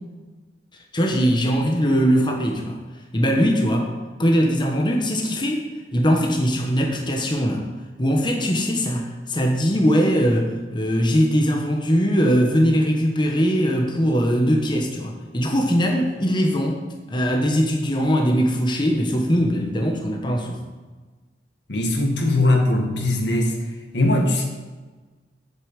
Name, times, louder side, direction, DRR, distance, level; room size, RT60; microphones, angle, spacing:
voice 1, 0.9-2.8 3.1-3.9 4.2-7.7 8.0-16.8 17.1-20.6, equal, 25° left, 2 dB, 1.1 m, -21 dB
voice 2, 21.7-23.6 23.9-24.4, left 1 dB, 75° left, 2 dB, 1.8 m, -20 dB
8.2 x 6.8 x 7.4 m, 1.3 s
head